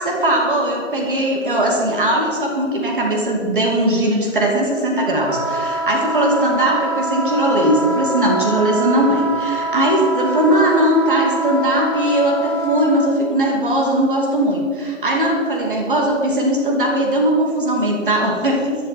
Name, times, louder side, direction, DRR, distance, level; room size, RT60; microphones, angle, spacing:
voice 1, 0.0-18.8, right 1 dB, 40° right, 0 dB, 2.7 m, -19 dB
Wind instrument woodwind instrument, 5.2-13.1, right 1 dB, 85° right, 5.0 m, -25 dB
22.0 x 11.0 x 4.5 m, 2.2 s
figure-of-eight pair, 155°, 38 cm